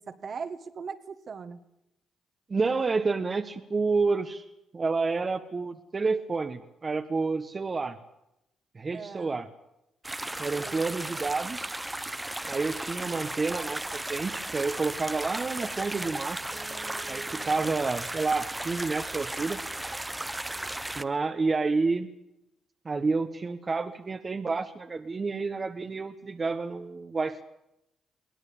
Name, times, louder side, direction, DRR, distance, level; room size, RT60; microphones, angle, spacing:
voice 1, 0.1-1.6 8.9-9.4 10.6-10.8 16.5-17.8, right 5 dB, 55° right, 9 dB, 1.9 m, -41 dB
voice 2, 2.5-4.4 4.7-8.0 8.7-9.5 10.4-11.7 12.5-16.4 17.1-19.6 20.9-22.1 22.8-27.4, right 4 dB, 35° right, 6 dB, 1.5 m, -29 dB
sound 1, 10.0-21.0, right 1 dB, 10° right, 1.1 m, -35 dB
23.0 x 17.5 x 8.8 m, 0.84 s
supercardioid pair, 70°, 0 cm